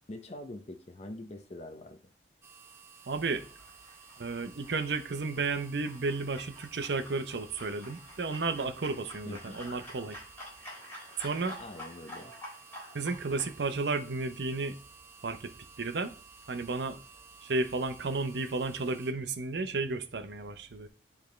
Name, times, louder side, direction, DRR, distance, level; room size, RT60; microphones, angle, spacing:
voice 1, 0.1-2.0 9.3-9.6 11.6-12.3, left 1 dB, 40° left, 0.6 m, -44 dB
sound 1, 2.4-19.1, right 5 dB, 15° right, 0.7 m, -54 dB
sound 2, 3.0-13.5, left 1 dB, 10° left, 3.7 m, -49 dB
voice 2, 3.1-3.5 4.2-10.2 11.2-11.6 12.9-14.8 15.2-16.1 16.5-17.0 17.4-20.9, right 3 dB, 70° right, 0.7 m, -33 dB
10.5 x 3.5 x 3.2 m
head